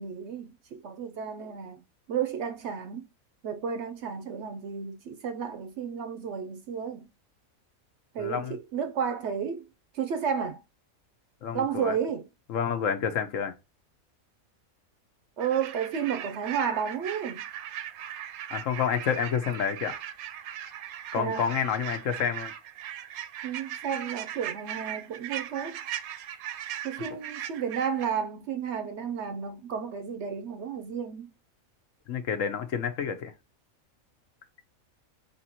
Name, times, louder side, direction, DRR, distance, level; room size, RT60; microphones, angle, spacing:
voice 1, 0.0-3.1 3.4-7.1 8.1-9.7 9.9-10.6 11.5-12.3 15.4-17.4 21.1-21.5 23.4-25.8 26.8-31.3, right 7 dB, 65° right, 0.7 m, -32 dB
voice 2, 8.2-8.6 11.4-12.0 12.5-13.5 18.5-19.9 21.1-22.5 32.1-33.3, left 7 dB, 70° left, 1.1 m, -29 dB
sound 1, 15.4-28.1, right 11 dB, 85° right, 1.1 m, -39 dB
4.2 x 3.5 x 2.8 m
omnidirectional pair, 1.5 m